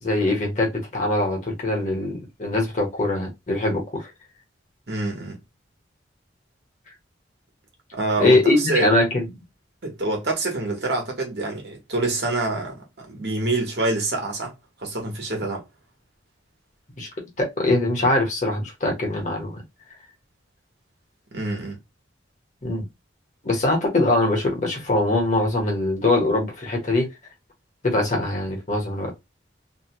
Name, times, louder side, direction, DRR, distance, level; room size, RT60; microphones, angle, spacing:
voice 1, 0.0-4.1 8.2-9.3 17.0-19.6 22.6-22.9 23.4-27.1 27.8-29.1, left 2 dB, 40° left, 1.1 m, -22 dB
voice 2, 4.9-5.4 7.9-8.9 9.8-14.5 14.8-15.6 21.3-21.8, right 2 dB, 65° right, 1.2 m, -26 dB
2.8 x 2.3 x 2.9 m
head